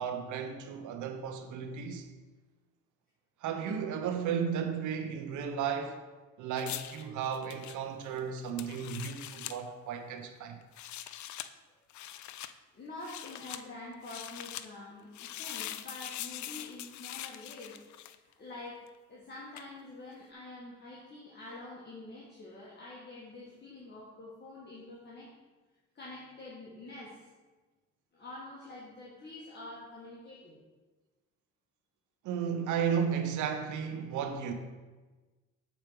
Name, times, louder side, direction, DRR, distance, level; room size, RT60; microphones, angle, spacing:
voice 1, 0.0-2.1 3.4-6.0 6.4-10.6 32.2-34.5, right 7 dB, 80° right, 0.8 m, -34 dB
sound 1, 6.6-9.6 10.6-11.5 11.9-12.5 13.0-13.6 14.0-14.7 15.1-18.3 19.6-19.7, left 12 dB, 70° left, 0.5 m, -42 dB
voice 2, 12.7-17.8 18.2-18.8 19.1-25.3 26.0-27.2 28.1-30.6, left 2 dB, 35° left, 1.7 m, -46 dB
7.2 x 4.5 x 5.1 m
cardioid pair, 90°, 30 cm